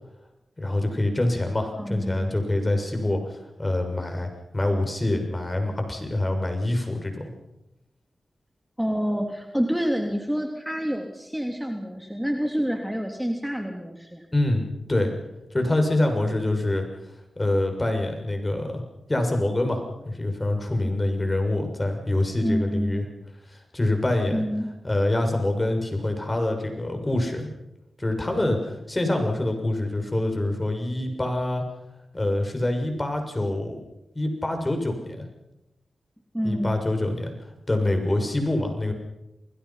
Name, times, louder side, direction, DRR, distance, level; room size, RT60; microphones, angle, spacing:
voice 1, 0.6-7.3 14.3-14.6 14.9-15.1 15.5-16.9 17.4-18.8 19.1-23.0 23.5-24.4 24.8-27.5 28.0-31.6 32.1-33.8 34.1-35.2 36.4-37.3 37.7-38.9, left 1 dB, 25° left, 4 dB, 6.7 m, -25 dB
voice 2, 1.8-2.3 8.8-14.2 22.4-23.0 24.3-24.7 36.3-36.8, equal, 5° right, 3 dB, 3.4 m, -28 dB
29.0 x 21.0 x 5.9 m, 0.92 s
cardioid pair, 45°, 0 cm